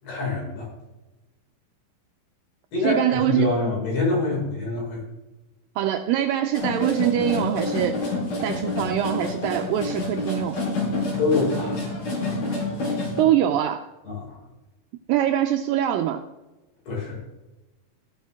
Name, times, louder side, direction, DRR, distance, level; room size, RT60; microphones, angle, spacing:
voice 1, 0.0-0.7 2.7-3.0 3.3-5.0 11.2-11.8 14.1-14.4 16.9-17.2, left 3 dB, 75° left, -4 dB, 7.4 m, -25 dB
voice 2, 2.8-3.6 5.8-8.0 8.4-10.6 13.2-13.9 15.1-16.2, right 11 dB, 80° right, 6 dB, 2.0 m, -23 dB
sound 1, 6.5-13.2, left 3 dB, 60° left, 5.4 m, -28 dB
15.0 x 11.5 x 3.6 m, 1.1 s
omnidirectional pair, 4.6 m